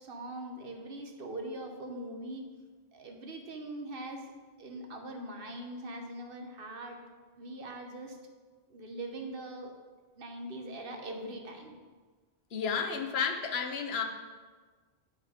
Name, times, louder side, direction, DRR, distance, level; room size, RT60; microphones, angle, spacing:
voice 1, 0.0-2.4 2.9-4.3 4.6-7.0 7.4-8.2 8.7-9.7 10.2-11.8, right 1 dB, 60° right, 3 dB, 1.1 m, -41 dB
voice 2, 12.5-14.0, left 6 dB, 75° left, 5 dB, 1.0 m, -31 dB
8.2 x 5.8 x 5.0 m, 1.4 s
omnidirectional pair, 1.1 m